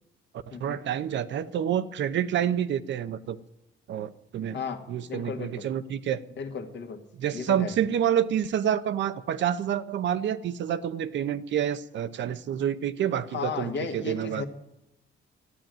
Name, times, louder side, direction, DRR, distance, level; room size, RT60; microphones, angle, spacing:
voice 1, 0.5-3.4 3.9-4.6 4.9-6.2 7.2-14.4, right 9 dB, 65° right, 12 dB, 0.8 m, -28 dB
voice 2, 5.1-5.7 6.4-7.0 7.3-7.7 13.3-14.4, left 5 dB, 65° left, 5 dB, 1.7 m, -34 dB
13.0 x 9.2 x 9.0 m, 0.90 s
cardioid pair, 90°, 20 cm